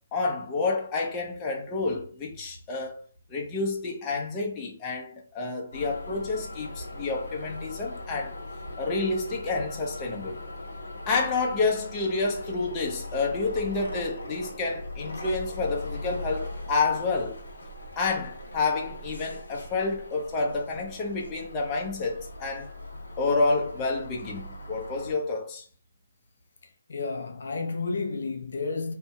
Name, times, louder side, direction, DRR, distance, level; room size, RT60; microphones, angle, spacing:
voice 1, 0.1-3.0 3.3-8.3 8.8-10.4 11.1-17.4 18.0-22.7 23.2-25.6, left 3 dB, 20° left, 0.7 m, -29 dB
sound 1, 5.7-25.1, left 1 dB, 85° left, 1.0 m, -40 dB
voice 2, 26.9-28.9, left 4 dB, 70° left, 0.6 m, -31 dB
2.7 x 2.6 x 2.3 m
hypercardioid pair, 150°, 0 cm